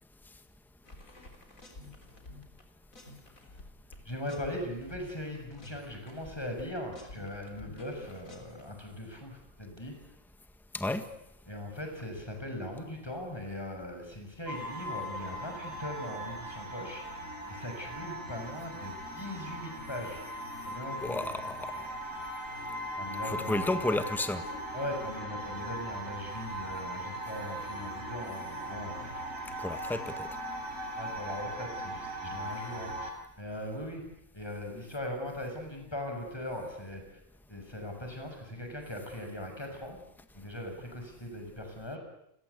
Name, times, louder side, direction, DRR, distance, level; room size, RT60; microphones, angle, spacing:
sound 1, 0.8-2.6 2.9-8.7, left 2 dB, 80° left, 4.5 m, -51 dB
voice 1, 4.0-10.0 11.5-17.2 17.5-20.2 20.6-21.3 22.9-23.8 24.7-29.1 30.9-33.1 33.4-34.1 34.3-37.2 37.5-40.0 40.3-42.0, left 1 dB, 20° left, 3 dB, 6.6 m, -40 dB
voice 2, 10.7-11.0 21.0-21.8 23.2-24.4 29.6-30.3, left 2 dB, ahead, 9 dB, 1.6 m, -32 dB
sound 2, 14.5-33.1, equal, 75° right, 5.6 m, -39 dB
30.0 x 21.5 x 8.3 m, 0.78 s
omnidirectional pair, 1.4 m